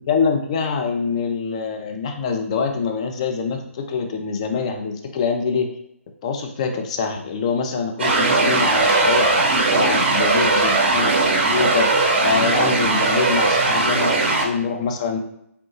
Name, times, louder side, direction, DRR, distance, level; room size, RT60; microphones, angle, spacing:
voice 1, 0.1-5.7 6.2-11.1 11.5-15.2, left 5 dB, 25° left, 5 dB, 0.3 m, -24 dB
sound 1, 8.0-14.4, right 3 dB, 45° right, 0.6 m, -19 dB
3.3 x 2.6 x 2.7 m, 0.77 s
figure-of-eight pair, 140°, 8 cm